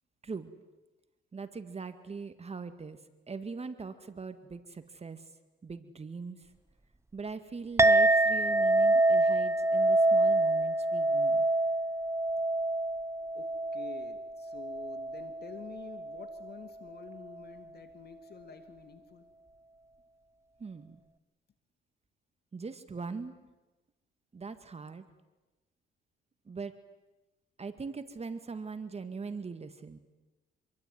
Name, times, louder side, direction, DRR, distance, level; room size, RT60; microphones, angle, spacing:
voice 1, 1.3-3.0 3.3-5.3 5.6-6.5 7.1-11.5 20.6-21.0 22.5-23.3 24.3-25.0 26.5-26.8 27.6-30.0, right 4 dB, 30° right, 10 dB, 2.0 m, -41 dB
Chink clink, 7.8-16.5, right 2 dB, 15° right, 0.9 m, -26 dB
voice 2, 13.7-19.2, left 6 dB, 55° left, 9 dB, 2.6 m, -49 dB
27.0 x 22.5 x 9.5 m, 1.1 s
cardioid pair, 90°, 20 cm